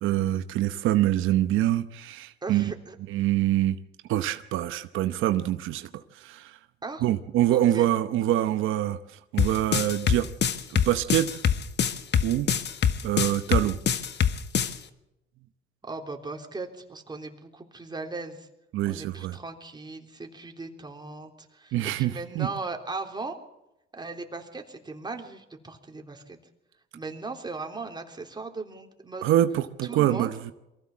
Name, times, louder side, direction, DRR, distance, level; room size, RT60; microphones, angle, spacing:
voice 1, 0.0-2.7 3.1-3.7 4.1-6.6 7.0-10.3 10.7-11.3 12.2-12.5 13.0-13.8 18.7-19.4 21.7-22.5 29.2-30.5, right 13 dB, 90° right, 10 dB, 0.9 m, -25 dB
voice 2, 2.4-3.0 6.8-7.0 7.5-7.9 15.8-18.5 18.9-23.4 23.9-26.4 26.9-29.3 29.8-30.3, right 3 dB, 20° right, 3 dB, 3.6 m, -38 dB
sound 1, 9.4-14.7, left 8 dB, 60° left, 1.5 m, -24 dB
23.0 x 15.5 x 7.3 m, 0.90 s
cardioid pair, 90°, 20 cm